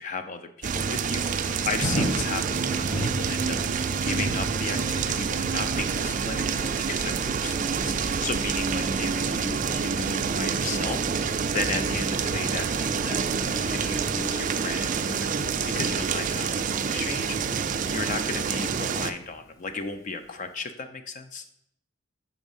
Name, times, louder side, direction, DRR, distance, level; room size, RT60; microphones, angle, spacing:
voice 1, 0.0-3.6 4.0-13.2 13.5-21.4, left 4 dB, 35° left, 8 dB, 0.4 m, -35 dB
sound 1, 0.6-19.1, right 6 dB, 40° right, 0.3 m, -27 dB
Thunder, 1.2-19.9 20.4-20.5, equal, 15° left, 0.9 m, -38 dB
6.1 x 4.0 x 5.3 m, 0.75 s
head